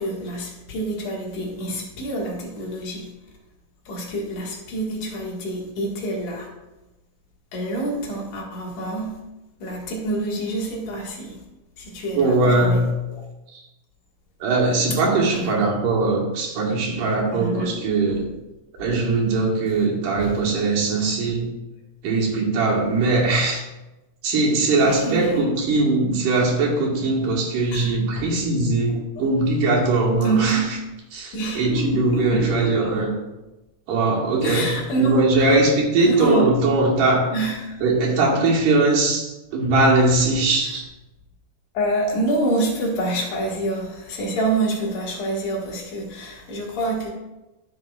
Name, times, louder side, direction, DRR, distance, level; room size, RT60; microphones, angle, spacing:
voice 1, 0.0-3.1 3.9-6.5 7.5-9.2 9.6-11.4 11.8-12.8 13.1-13.2 15.3-15.6 17.3-17.8 20.2-20.4 24.8-25.5 27.7-27.9 28.2-28.3 28.9-29.0 30.2-30.7 31.3-32.9 34.4-35.6 36.0-36.6 37.3-37.7 41.7-47.1, right 2 dB, 55° left, -2 dB, 2.9 m, -27 dB
voice 2, 12.2-12.9 13.5-13.6 14.4-18.3 18.8-21.5 22.0-23.7 24.2-30.6 31.1-33.1 33.9-37.3 37.8-40.8, right 3 dB, 70° right, -2 dB, 3.1 m, -20 dB
13.0 x 7.6 x 2.4 m, 1.0 s
omnidirectional pair, 4.2 m